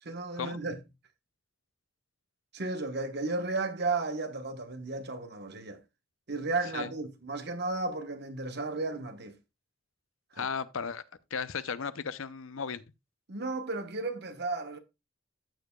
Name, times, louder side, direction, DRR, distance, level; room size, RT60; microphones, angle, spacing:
voice 1, 0.0-0.8 2.5-5.8 6.3-9.4 10.3-10.5 13.3-14.8, right 3 dB, 55° right, 1.2 m, -34 dB
voice 2, 10.4-11.0 11.3-12.8, left 6 dB, 80° left, 0.7 m, -35 dB
14.0 x 6.8 x 2.3 m
head